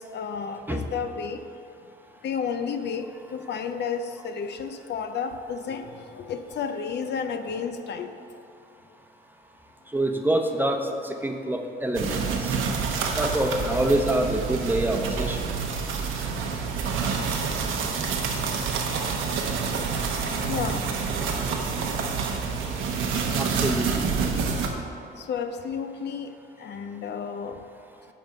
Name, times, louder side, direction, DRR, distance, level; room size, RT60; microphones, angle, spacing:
voice 1, 0.0-1.4 2.2-8.1 12.0-12.2 20.0-20.9 25.2-26.3 26.6-27.6, left 6 dB, 60° left, 7 dB, 0.6 m, -32 dB
voice 2, 9.9-12.6 13.2-15.4 23.3-24.1, right 1 dB, 10° right, 4 dB, 0.8 m, -26 dB
sound 1, 11.9-24.7, right 5 dB, 80° right, 1.0 m, -28 dB
10.0 x 3.6 x 6.5 m, 2.6 s
cardioid pair, 90°, 20 cm